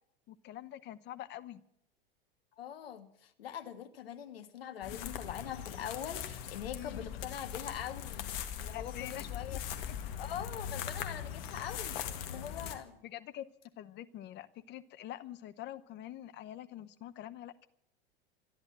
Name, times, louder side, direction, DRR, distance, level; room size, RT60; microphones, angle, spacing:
voice 1, 0.3-1.6 4.8-5.1 6.7-7.1 8.6-9.2 9.5-9.6 9.9-10.0 13.0-13.5 13.8-17.7, left 13 dB, 35° left, 14 dB, 0.9 m, -45 dB
voice 2, 2.6-9.6 10.2-12.0 12.3-13.0, left 9 dB, 70° left, 8 dB, 1.7 m, -43 dB
sound 1, 4.8-12.7, left 9 dB, 55° left, 1.9 m, -40 dB
13.5 x 10.5 x 8.8 m, 0.74 s
hypercardioid pair, 90°, 31 cm